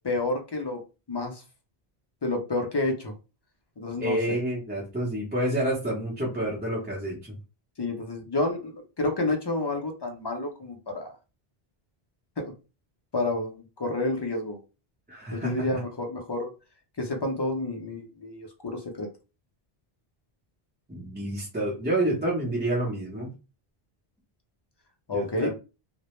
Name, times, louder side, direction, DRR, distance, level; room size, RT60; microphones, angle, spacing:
voice 1, 0.0-0.8 1.1-1.4 2.2-3.1 3.8-4.2 7.8-8.7 9.0-11.1 12.4-12.5 13.1-14.6 15.3-16.5 17.0-19.1 25.1-25.5, left 2 dB, 40° left, 2 dB, 0.3 m, -29 dB
voice 2, 4.0-7.3 15.1-15.7 20.9-23.3 25.1-25.5, right 1 dB, 10° right, -5 dB, 0.6 m, -28 dB
2.1 x 2.0 x 2.9 m, 0.30 s
omnidirectional pair, 1.0 m